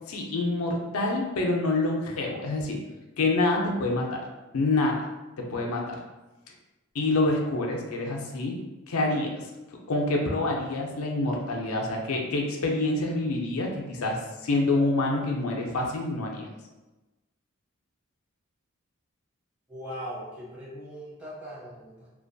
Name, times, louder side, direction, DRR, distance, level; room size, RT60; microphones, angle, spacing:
voice 1, 0.1-2.8 3.2-4.2 4.5-5.1 5.4-6.0 6.9-8.6 8.9-16.5, left 2 dB, 85° left, 0 dB, 0.4 m, -27 dB
voice 2, 19.7-22.1, equal, 5° right, -9 dB, 0.8 m, -40 dB
2.4 x 2.2 x 2.5 m, 1.1 s
head